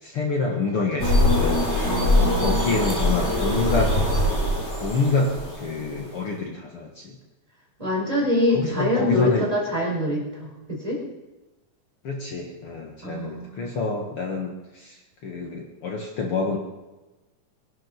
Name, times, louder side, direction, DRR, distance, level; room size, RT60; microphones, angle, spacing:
voice 1, 0.0-1.7 2.2-3.9 4.8-7.2 8.5-9.5 12.0-15.0 15.2-16.6, left 3 dB, 55° left, 0 dB, 2.5 m, -27 dB
sound 1, 1.0-6.1, left 1 dB, 20° left, 3.7 m, -22 dB
voice 2, 1.8-3.0 7.8-11.0 13.0-13.7, left 1 dB, 10° right, -4 dB, 5.0 m, -25 dB
22.5 x 11.5 x 5.4 m, 1.1 s
omnidirectional pair, 3.3 m